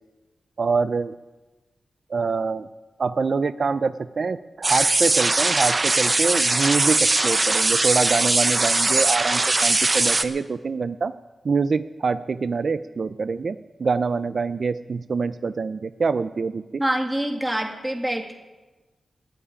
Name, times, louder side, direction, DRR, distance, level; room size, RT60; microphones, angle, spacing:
voice 1, 0.6-1.1 2.1-2.7 3.0-11.1 11.4-16.6, right 4 dB, 60° right, 12 dB, 0.5 m, -25 dB
sound 1, 4.6-10.2, right 2 dB, 35° right, 1.0 m, -20 dB
voice 2, 16.8-18.4, right 1 dB, 10° right, 4 dB, 2.2 m, -26 dB
14.0 x 8.8 x 9.8 m, 1.2 s
cardioid pair, 75°, 0 cm